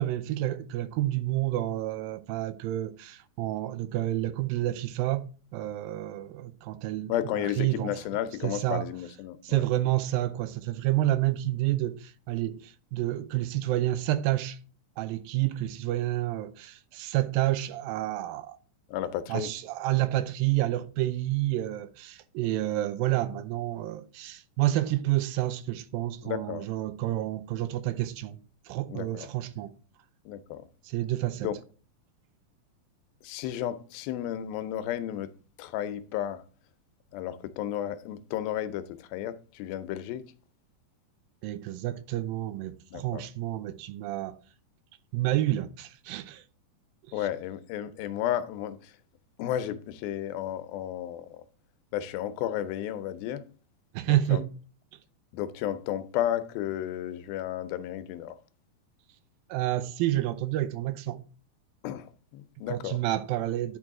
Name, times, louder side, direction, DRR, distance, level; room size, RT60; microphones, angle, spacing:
voice 1, 0.0-7.9 8.4-8.9 9.4-14.6 15.0-18.6 19.3-28.4 28.7-29.7 30.8-31.5 41.4-44.4 45.1-46.4 53.9-54.5 59.5-61.2 62.7-63.8, right 15 dB, 85° right, 2.3 m, -29 dB
voice 2, 7.1-9.6 18.9-19.5 26.2-26.7 28.9-29.3 30.3-30.7 31.4-31.5 33.2-35.3 35.6-36.4 37.1-40.3 42.9-43.2 47.1-48.8 49.4-51.4 51.9-53.4 54.1-54.4 55.3-58.4 61.8-63.0, left 11 dB, 85° left, 2.5 m, -33 dB
10.5 x 4.6 x 3.6 m
omnidirectional pair, 4.2 m